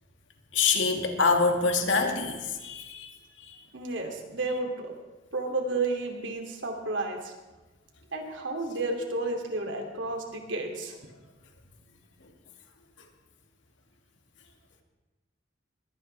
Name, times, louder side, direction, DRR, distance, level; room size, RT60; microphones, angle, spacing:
voice 1, 0.5-3.1, left 4 dB, 75° left, 3 dB, 2.1 m, -25 dB
voice 2, 3.7-4.9 5.3-7.3 8.1-11.0, right 2 dB, 80° right, 2 dB, 2.8 m, -32 dB
22.5 x 18.0 x 3.4 m, 1.2 s
head